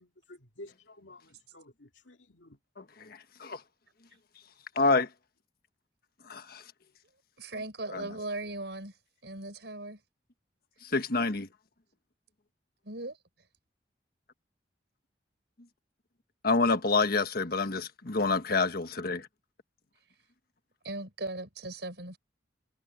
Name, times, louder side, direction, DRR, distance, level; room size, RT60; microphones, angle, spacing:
voice 1, 0.0-2.6, left 1 dB, 90° left, 2.7 m, -52 dB
voice 2, 4.8-5.1 6.3-6.6 10.9-11.5 16.4-19.2, left 3 dB, 55° left, 1.4 m, -27 dB
voice 3, 7.4-9.0 9.2-10.0 12.8-13.2 20.8-22.2, right 2 dB, 65° right, 6.3 m, -38 dB
head